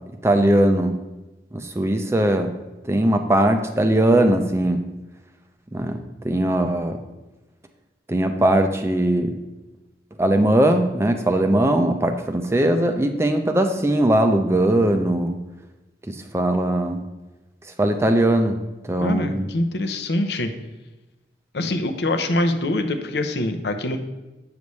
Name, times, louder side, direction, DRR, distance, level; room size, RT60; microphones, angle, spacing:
voice 1, 0.2-0.9 1.5-2.5 2.8-4.8 5.7-6.0 6.2-7.0 8.1-9.4 10.2-15.4 16.1-17.0 17.8-18.6 18.9-19.5, right 1 dB, 15° right, 6 dB, 0.5 m, -20 dB
voice 2, 19.0-20.5 21.5-24.0, left 1 dB, 70° left, 7 dB, 0.7 m, -24 dB
8.2 x 6.8 x 3.2 m, 1.1 s
head